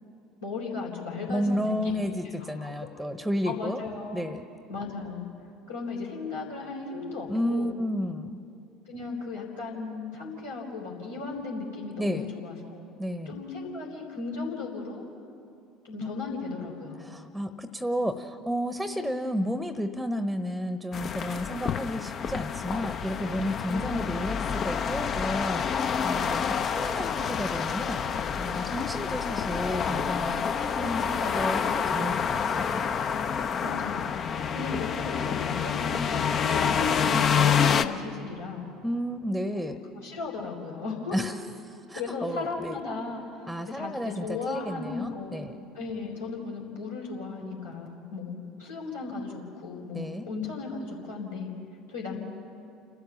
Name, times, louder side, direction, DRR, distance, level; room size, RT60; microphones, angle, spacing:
voice 1, 0.4-1.9 2.4-2.7 3.4-4.3 4.7-5.3 5.7-7.7 8.9-12.8 13.3-15.0 15.8-17.1 23.7-24.1 33.6-34.2 34.5-38.7 39.5-41.2 42.0-51.5 51.9-52.2, left 4 dB, 80° left, -5 dB, 3.8 m, -36 dB
voice 2, 1.3-3.8 4.1-4.4 7.3-8.4 12.0-12.3 13.0-13.4 16.0-16.1 17.0-28.0 28.4-32.8 38.8-39.8 41.1-41.3 41.6-42.8 43.5-45.6 49.9-50.3, equal, ahead, 11 dB, 1.0 m, -32 dB
sound 1, 20.9-37.9, left 7 dB, 40° left, 0.8 m, -28 dB
29.5 x 13.0 x 7.1 m, 2.5 s
figure-of-eight pair, 65°, 0 cm